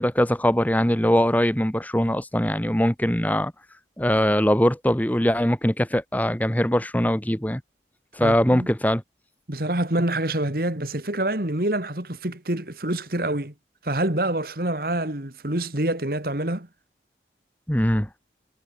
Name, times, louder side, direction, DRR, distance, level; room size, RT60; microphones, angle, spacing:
voice 1, 0.0-3.5 4.0-7.6 8.1-9.0 17.7-18.1, equal, 10° left, 1.8 m, -21 dB
voice 2, 8.2-8.7 9.5-13.5 13.8-16.7, right 1 dB, 55° right, 2.5 m, -26 dB
head